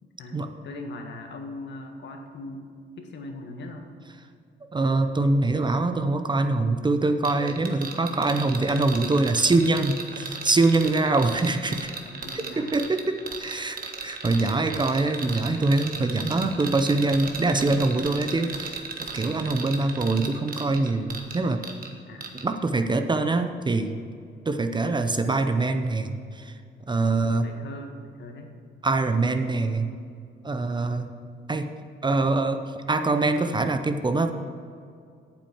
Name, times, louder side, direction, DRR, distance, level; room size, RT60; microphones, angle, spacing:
voice 1, 0.0-2.7 3.0-3.9 10.8-10.9 12.0-12.7 22.1-22.4 27.0-28.6, left 2 dB, 65° left, 4 dB, 1.6 m, -40 dB
voice 2, 4.7-11.9 12.3-21.6 22.4-23.9 24.5-26.5 26.9-27.5 28.8-29.9 30.4-31.0 31.5-31.7 32.0-32.6 32.9-34.3, right 2 dB, 25° right, 7 dB, 0.7 m, -24 dB
sound 1, 7.2-21.9 22.2-22.4, right 5 dB, 45° right, 1.4 m, -36 dB
8.9 x 7.5 x 7.3 m, 2.3 s
cardioid pair, 90°, 20 cm